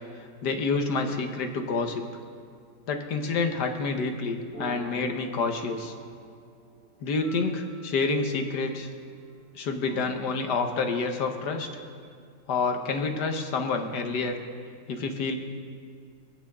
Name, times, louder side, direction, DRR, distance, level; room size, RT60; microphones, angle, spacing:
voice 1, 0.4-2.0 2.9-5.9 7.0-8.9 9.6-11.7 12.5-14.4 14.9-15.3, left 4 dB, 70° left, 5 dB, 1.7 m, -28 dB
sound 1, 4.5-9.4 9.8-12.1, right 1 dB, 10° left, 4.3 m, -47 dB
26.0 x 9.3 x 3.7 m, 2.2 s
omnidirectional pair, 1.8 m